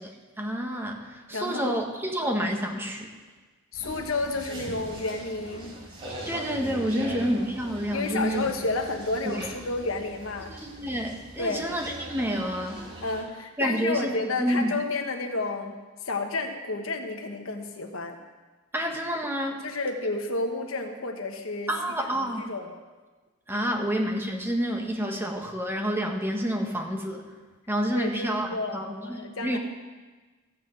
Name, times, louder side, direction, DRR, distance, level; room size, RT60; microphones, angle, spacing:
voice 1, 0.4-1.0 1.3-3.1 6.2-8.4 9.3-9.5 10.5-12.8 13.6-14.7 18.7-19.6 21.7-22.5 23.5-27.2 27.7-29.6, equal, 10° right, 2 dB, 1.3 m, -29 dB
voice 2, 1.3-1.8 3.7-5.7 6.9-7.2 7.9-10.5 11.4-11.7 13.0-15.7 16.0-18.2 19.6-21.7 22.0-22.7 23.6-23.9 27.9-29.6, left 3 dB, 75° left, 4 dB, 1.3 m, -31 dB
sound 1, 3.7-13.2, right 1 dB, 25° right, 4.7 m, -41 dB
14.5 x 5.9 x 7.8 m, 1.3 s
head